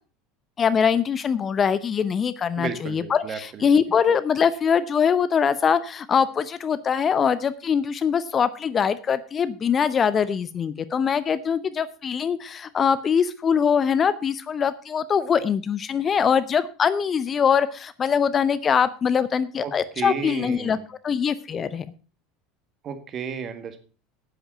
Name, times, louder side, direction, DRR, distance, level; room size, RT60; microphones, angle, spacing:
voice 1, 0.6-21.8, left 7 dB, 30° left, 15 dB, 0.7 m, -23 dB
voice 2, 2.6-3.7 19.6-20.8 22.8-23.8, right 6 dB, 35° right, 8 dB, 1.9 m, -33 dB
10.0 x 8.8 x 5.5 m, 0.36 s
figure-of-eight pair, 70°, 0 cm